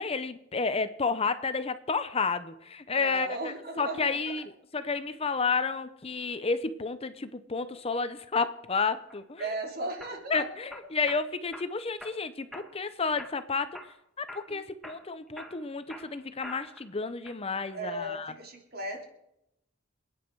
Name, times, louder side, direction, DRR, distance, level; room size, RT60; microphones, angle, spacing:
voice 1, 0.0-9.4 10.3-13.8 14.2-18.3, left 4 dB, 30° left, 12 dB, 0.7 m, -31 dB
voice 2, 2.9-4.3 9.4-10.5 14.5-14.7 17.7-19.0, right 2 dB, 55° right, 2 dB, 3.1 m, -36 dB
sound 1, 9.1-9.5 10.0-11.2 11.5-12.2 12.5-12.9 13.2-14.0 14.3-14.5 14.8-16.9 17.2-17.8, equal, ahead, 1.8 m, -45 dB
27.5 x 9.5 x 4.7 m, 0.83 s
head